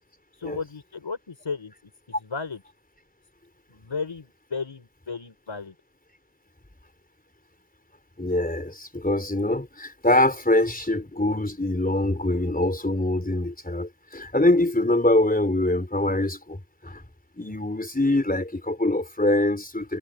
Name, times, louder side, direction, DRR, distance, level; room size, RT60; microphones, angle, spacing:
voice 1, 0.4-1.7 2.2-2.6 3.7-5.7, left 4 dB, 85° left, 5.0 m, -34 dB
voice 2, 8.2-16.6 16.8-17.0 17.4-20.0, left 1 dB, 20° left, 4.1 m, -24 dB
wide cardioid pair, 50°, 44 cm